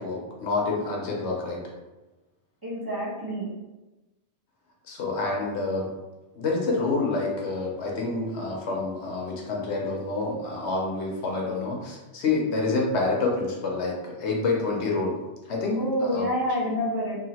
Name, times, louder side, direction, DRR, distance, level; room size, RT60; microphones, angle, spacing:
voice 1, 0.0-1.6 4.9-5.9 6.3-15.2 15.5-16.3, left 3 dB, 70° left, -1 dB, 0.9 m, -28 dB
voice 2, 2.6-3.5 15.7-17.2, equal, 20° right, -10 dB, 0.9 m, -28 dB
2.8 x 2.7 x 2.8 m, 1.1 s
omnidirectional pair, 1.2 m